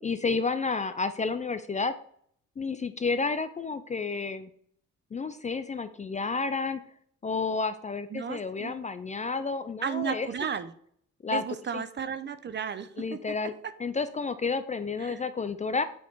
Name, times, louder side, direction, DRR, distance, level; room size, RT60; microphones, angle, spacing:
voice 1, 0.0-1.9 2.6-4.5 5.1-6.8 7.2-10.3 11.2-11.4 11.7-11.8 13.0-13.5 13.8-15.8, left 4 dB, 25° left, 11 dB, 0.4 m, -30 dB
voice 2, 8.1-8.7 9.8-10.7 11.3-13.4 15.0-15.2, right 7 dB, 35° right, 12 dB, 0.6 m, -34 dB
7.1 x 3.3 x 4.6 m, 0.63 s
cardioid pair, 90°, 30 cm